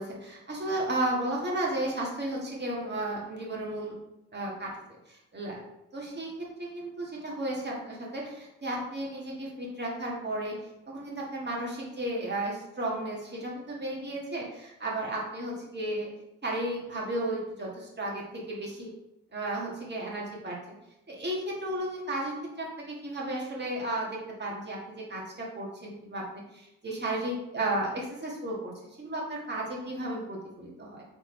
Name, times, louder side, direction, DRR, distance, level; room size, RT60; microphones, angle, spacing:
voice 1, 0.0-4.0 4.3-4.7 5.1-5.6 5.9-6.3 6.6-10.6 10.9-16.1 16.4-18.9 19.3-20.7 21.1-26.2 26.5-31.0, right 1 dB, 25° right, -3 dB, 1.6 m, -34 dB
4.5 x 3.5 x 3.2 m, 0.87 s
hypercardioid pair, 60°, 39 cm